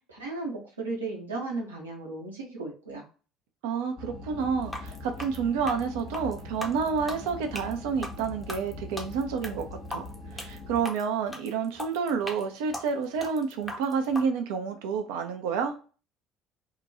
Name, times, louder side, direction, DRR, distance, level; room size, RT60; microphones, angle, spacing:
voice 1, 0.1-3.1, right 3 dB, 80° right, 0.8 m, -35 dB
voice 2, 3.6-10.0 10.3-15.7, right 6 dB, 65° right, 0.4 m, -29 dB
sound 1, 4.0-10.8, left 2 dB, 50° left, 0.7 m, -42 dB
sound 2, 4.6-14.3, left 1 dB, 10° left, 0.7 m, -39 dB
2.7 x 2.2 x 2.5 m
figure-of-eight pair, 60°, 0 cm